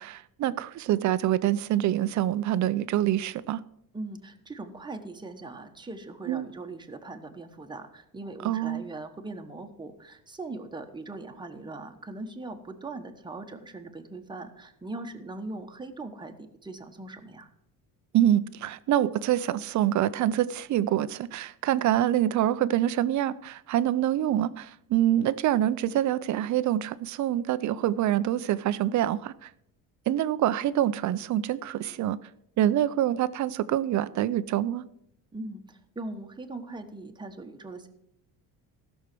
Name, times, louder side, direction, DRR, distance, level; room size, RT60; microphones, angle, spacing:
voice 1, 0.0-3.6 6.3-6.5 8.4-8.8 18.1-29.5 30.1-32.2 32.6-34.8, right 12 dB, 50° right, 0.6 m, -26 dB
voice 2, 3.9-17.5 35.3-37.9, right 2 dB, 10° right, 1.2 m, -40 dB
15.5 x 6.4 x 6.1 m
cardioid pair, 130°, 38 cm